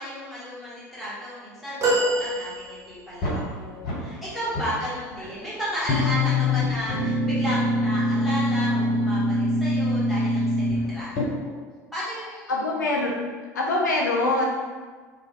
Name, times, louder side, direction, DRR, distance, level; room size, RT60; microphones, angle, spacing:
voice 1, 0.0-11.5 11.9-12.5, equal, ahead, -10 dB, 1.2 m, -33 dB
sound 1, 1.8-3.2 5.6-5.8 7.1-7.2, right 1 dB, 30° right, 0.8 m, -25 dB
sound 2, 3.2-4.2 4.5-5.4 5.9-11.2, left 1 dB, 45° left, 0.8 m, -24 dB
voice 2, 12.5-13.1 13.5-14.5, left 2 dB, 75° left, -2 dB, 0.4 m, -23 dB
2.3 x 2.2 x 3.0 m, 1.5 s
figure-of-eight pair, 70°, 10 cm